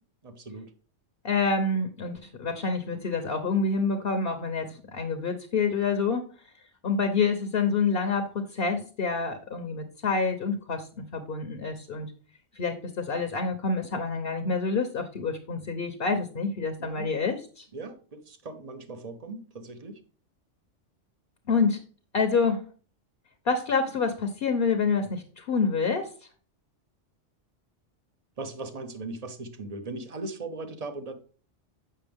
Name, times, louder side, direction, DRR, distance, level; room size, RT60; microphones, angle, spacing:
voice 1, 0.2-0.7 16.8-17.1 17.7-20.0 28.4-31.1, right 3 dB, 35° right, 8 dB, 0.9 m, -38 dB
voice 2, 1.2-6.2 6.8-12.1 12.5-17.7 21.5-21.8 22.1-22.7 23.5-26.1, left 4 dB, 55° left, 6 dB, 1.0 m, -27 dB
7.7 x 5.9 x 3.5 m, 0.40 s
omnidirectional pair, 1.3 m